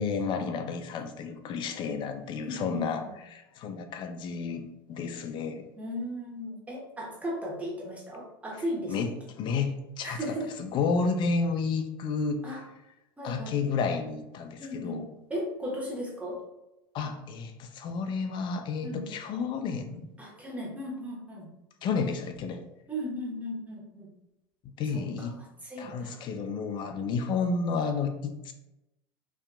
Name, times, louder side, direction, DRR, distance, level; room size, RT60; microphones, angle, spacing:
voice 1, 0.0-4.6 4.9-5.7 8.9-9.1 9.4-10.3 10.6-12.4 13.2-15.1 16.9-20.1 21.8-22.6 24.8-25.4 25.8-28.5, left 5 dB, 40° left, 7 dB, 0.4 m, -31 dB
voice 2, 2.4-3.1 5.8-8.9 10.0-10.5 12.4-12.6 13.2-13.6 14.6-15.0 15.3-16.4 18.8-19.2 20.2-21.5 22.9-24.1 25.6-26.2, equal, 10° right, -3 dB, 0.9 m, -36 dB
2.7 x 2.3 x 2.2 m, 0.91 s
hypercardioid pair, 90°, 13 cm